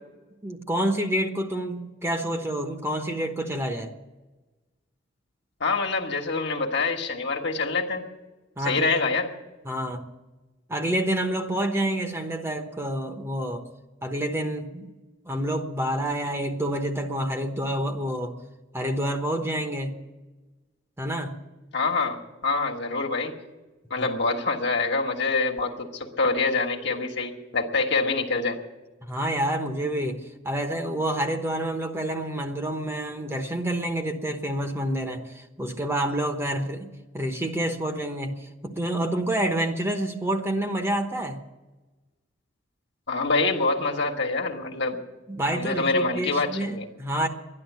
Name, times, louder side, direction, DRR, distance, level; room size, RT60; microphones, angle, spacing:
voice 1, 0.4-3.9 8.6-8.9 9.6-10.1 10.7-13.6 14.0-14.9 15.3-18.4 18.7-19.9 21.0-21.3 24.0-24.1 29.0-41.4 45.3-47.3, right 1 dB, 15° right, 5 dB, 1.0 m, -28 dB
voice 2, 5.6-8.0 8.6-9.3 21.7-23.3 23.9-28.6 43.1-45.0 45.5-46.8, left 3 dB, 60° left, 2 dB, 1.6 m, -25 dB
12.5 x 11.0 x 9.4 m, 1.2 s
head